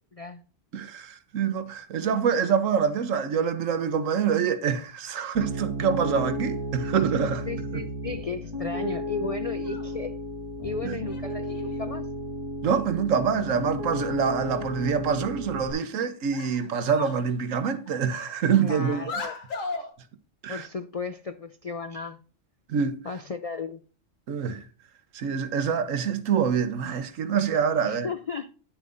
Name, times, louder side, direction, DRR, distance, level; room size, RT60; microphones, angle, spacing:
voice 1, 0.1-0.4 7.5-10.2 10.6-12.1 18.6-19.3 20.5-22.2 23.0-23.8 27.8-28.5, left 4 dB, 55° left, 0.4 m, -34 dB
voice 2, 0.7-7.5 7.7-7.8 10.8-11.0 12.6-19.1 20.4-20.7 22.7-23.0 24.3-24.6 25.1-28.1, right 7 dB, 80° right, 1.2 m, -26 dB
Piano, 5.3-15.7, equal, 20° right, 1.8 m, -33 dB
sound 1, 9.6-10.0 11.1-11.9 13.1-13.2 13.6-13.7 14.1-14.2 14.4-15.1 15.7-15.9 16.3-17.3 17.6-19.9, left 4 dB, 80° left, 1.7 m, -38 dB
10.5 x 7.2 x 2.5 m
omnidirectional pair, 1.3 m